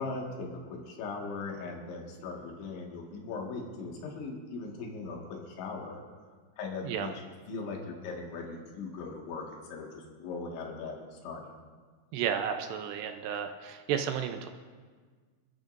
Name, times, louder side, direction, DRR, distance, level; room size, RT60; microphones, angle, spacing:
voice 1, 0.0-6.0 6.6-7.1 7.5-9.4 9.7-11.5, left 4 dB, 80° left, -1 dB, 4.2 m, -39 dB
voice 2, 12.1-14.5, right 8 dB, 80° right, 6 dB, 2.7 m, -32 dB
27.5 x 13.0 x 2.6 m, 1.5 s
omnidirectional pair, 5.2 m